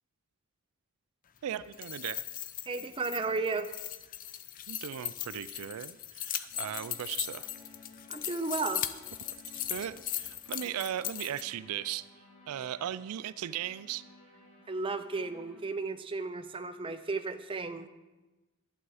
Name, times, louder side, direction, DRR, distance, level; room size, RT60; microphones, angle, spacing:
voice 1, 1.4-2.2 4.7-7.5 9.7-12.1 12.5-14.0, right 10 dB, 80° right, 16 dB, 0.3 m, -37 dB
sound 1, 1.6-11.4, left 12 dB, 40° left, 0.5 m, -38 dB
voice 2, 2.7-3.7 8.1-8.8 14.7-17.9, right 3 dB, 25° right, 9 dB, 0.5 m, -34 dB
sound 2, 6.5-15.6, left 2 dB, 65° left, 2.9 m, -57 dB
11.5 x 8.3 x 4.8 m, 1.1 s
head